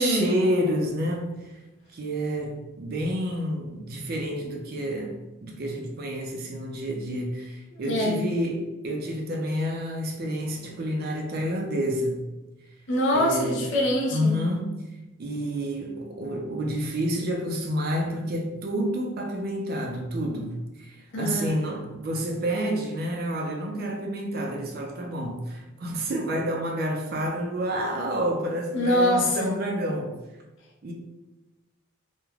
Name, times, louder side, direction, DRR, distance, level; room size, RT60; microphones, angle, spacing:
voice 1, 0.0-1.6 1.9-12.2 13.1-13.7 14.1-14.7 15.2-30.2 30.8-30.9, equal, 45° right, 1 dB, 0.4 m, -29 dB
voice 2, 7.7-8.2 12.9-14.4 21.1-21.5 28.7-29.5, left 1 dB, 55° left, -1 dB, 0.5 m, -24 dB
3.1 x 2.1 x 2.3 m, 1.1 s
head